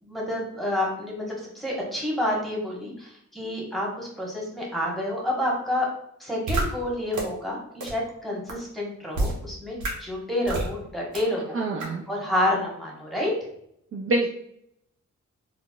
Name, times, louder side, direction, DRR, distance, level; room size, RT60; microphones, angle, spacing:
voice 1, 0.0-5.9 6.2-11.6 12.1-13.3, left 1 dB, ahead, -4 dB, 1.1 m, -29 dB
sound 1, 6.5-6.6 7.1-7.2 7.8-7.9 8.5-8.6 9.1-9.3 9.8-9.9 10.5-10.7 11.1-11.2 11.8-11.9, right 2 dB, 85° right, 0.9 m, -26 dB
voice 2, 11.5-12.0 13.9-14.3, right 2 dB, 45° right, -1 dB, 0.4 m, -26 dB
3.9 x 2.1 x 2.3 m, 0.72 s
cardioid pair, 85°, 30 cm